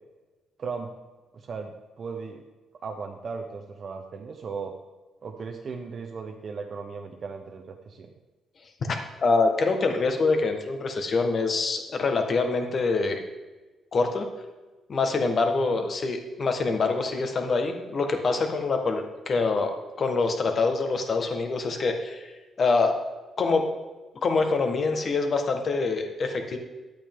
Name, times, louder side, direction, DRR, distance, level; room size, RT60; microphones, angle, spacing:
voice 1, 0.6-0.9 1.3-2.4 2.8-4.7 5.2-8.1 15.6-15.9, right 5 dB, 50° right, 4 dB, 0.9 m, -37 dB
voice 2, 8.8-13.2 13.9-14.2 14.9-22.3 22.6-22.9 23.4-23.6 24.2-26.6, left 3 dB, 45° left, 5 dB, 1.5 m, -25 dB
10.5 x 8.4 x 3.7 m, 1.2 s
cardioid pair, 90°, 0 cm